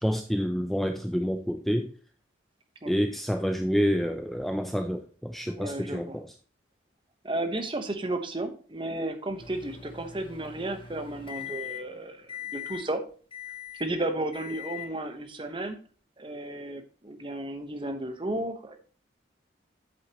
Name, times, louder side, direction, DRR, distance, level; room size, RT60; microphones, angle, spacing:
voice 1, 0.0-1.9 2.9-6.3, equal, ahead, 6 dB, 0.4 m, -28 dB
voice 2, 5.5-6.2 7.2-13.0 13.8-15.8 16.2-18.8, right 1 dB, 25° right, 6 dB, 1.0 m, -33 dB
Microwave oven, 9.4-12.0 12.3-12.9 13.3-13.9 14.3-14.9, left 10 dB, 30° left, 0.8 m, -41 dB
8.1 x 8.1 x 3.0 m, 0.41 s
head